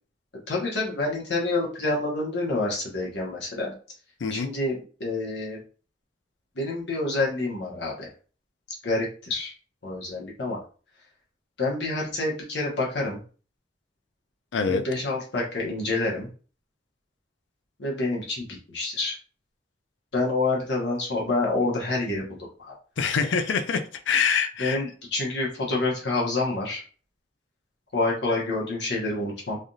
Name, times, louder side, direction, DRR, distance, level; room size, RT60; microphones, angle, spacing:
voice 1, 0.5-3.7 4.3-5.6 6.6-8.1 8.8-9.5 9.8-10.6 11.6-13.2 14.7-16.3 17.8-19.2 20.1-22.7 24.6-26.8 27.9-29.6, left 2 dB, 70° left, -3 dB, 1.0 m, -28 dB
voice 2, 4.2-4.5 14.5-14.9 23.0-24.8, left 6 dB, 90° left, 9 dB, 0.4 m, -25 dB
3.3 x 2.6 x 2.3 m, 0.38 s
head